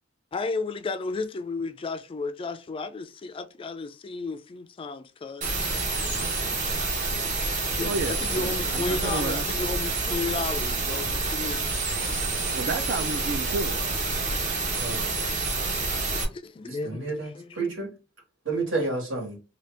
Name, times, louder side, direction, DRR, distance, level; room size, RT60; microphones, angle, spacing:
voice 1, 0.3-5.5 7.6-11.6 16.0-17.7, left 3 dB, 30° left, 0.3 m, -33 dB
sound 1, 5.4-16.2, right 3 dB, 40° right, 0.9 m, -28 dB
voice 2, 7.8-9.5 12.5-13.8, right 3 dB, 60° right, 0.4 m, -31 dB
voice 3, 14.7-15.3 16.7-17.9 18.4-19.4, right 3 dB, 80° right, 1.7 m, -30 dB
2.8 x 2.7 x 3.2 m
head